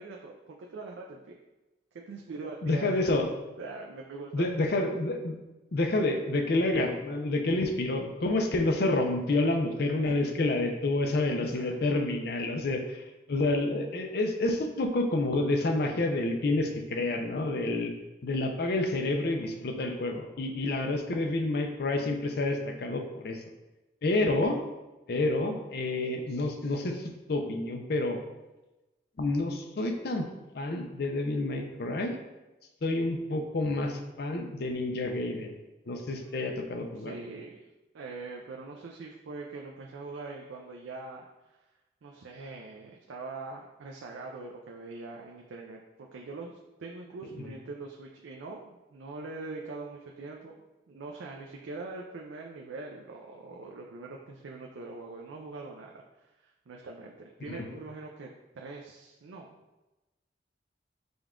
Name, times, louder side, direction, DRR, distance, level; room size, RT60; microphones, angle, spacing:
voice 1, 0.0-1.3 2.1-2.9 3.6-4.5 10.1-10.2 11.3-11.7 36.1-36.4 37.1-37.7 37.9-41.3 42.0-50.5 50.9-58.3 58.5-59.6, right 3 dB, 80° right, 0 dB, 0.4 m, -43 dB
voice 2, 2.6-3.3 4.3-5.4 5.7-17.9 18.2-23.4 24.0-24.6 25.1-28.2 29.2-30.3 30.5-32.2 32.8-35.6 35.9-37.1 57.5-57.8, left 2 dB, 55° left, 4 dB, 0.5 m, -29 dB
5.1 x 2.3 x 3.6 m, 1.0 s
head